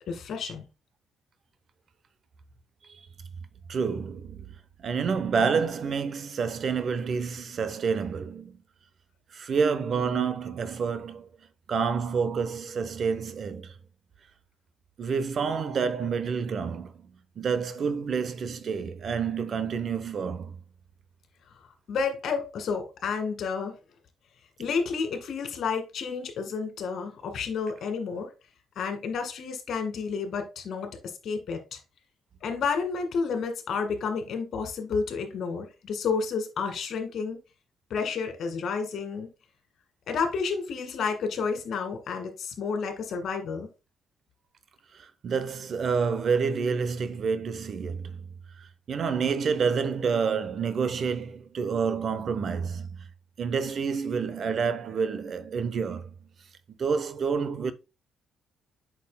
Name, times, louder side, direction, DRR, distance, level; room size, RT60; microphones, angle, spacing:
voice 1, 0.1-0.6 21.9-23.8 24.6-28.3 28.8-30.9 31.2-31.8 32.4-37.4 37.9-39.3 40.1-43.7, left 5 dB, 65° left, 2.0 m, -30 dB
voice 2, 3.7-4.5 4.8-8.6 9.3-11.3 11.7-13.7 15.0-17.1 17.4-20.6 44.9-48.3 48.6-53.0 53.4-56.1 56.8-57.7, right 5 dB, 55° right, 0.8 m, -28 dB
8.5 x 6.1 x 2.2 m
cardioid pair, 90°, 0 cm